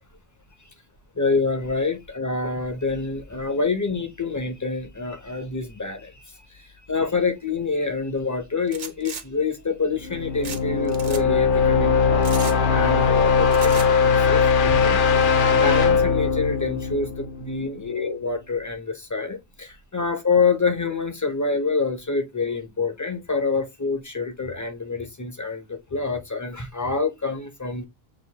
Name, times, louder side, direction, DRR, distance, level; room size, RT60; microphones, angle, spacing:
voice 1, 1.1-27.9, left 4 dB, 20° left, 0.6 m, -27 dB
sound 1, 8.7-9.2 10.4-10.6 10.9-11.2 12.2-12.6 13.5-13.9, right 6 dB, 45° right, 0.7 m, -35 dB
sound 2, 10.0-17.8, left 5 dB, 60° left, 0.7 m, -20 dB
6.3 x 2.6 x 2.8 m
omnidirectional pair, 1.1 m